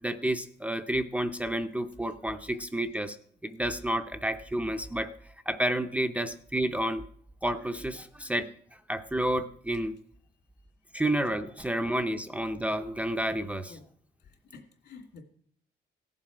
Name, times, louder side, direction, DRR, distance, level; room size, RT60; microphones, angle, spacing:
voice 1, 0.0-3.2 3.4-5.1 5.5-7.0 7.4-8.5 8.9-9.9 10.9-13.8, right 1 dB, 10° right, 7 dB, 0.5 m, -30 dB
voice 2, 14.2-15.2, left 4 dB, 75° left, 3 dB, 2.6 m, -50 dB
17.0 x 7.4 x 4.8 m, 0.62 s
cardioid pair, 165°, 18 cm